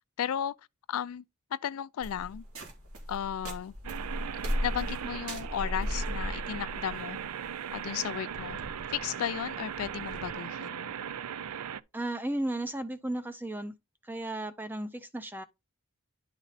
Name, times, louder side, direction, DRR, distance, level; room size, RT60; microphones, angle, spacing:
voice 1, 0.2-0.6 0.9-1.2 1.5-2.4 3.1-3.7 4.6-7.2 7.7-8.6 8.9-10.9, left 9 dB, 70° left, 0.3 m, -34 dB
sound 1, 2.0-10.3, equal, 70° right, 2.3 m, -37 dB
sound 2, 3.8-11.8, right 8 dB, 90° right, 0.5 m, -38 dB
voice 2, 11.9-13.7 14.0-15.4, right 1 dB, 10° right, 0.4 m, -34 dB
10.5 x 4.1 x 4.0 m
head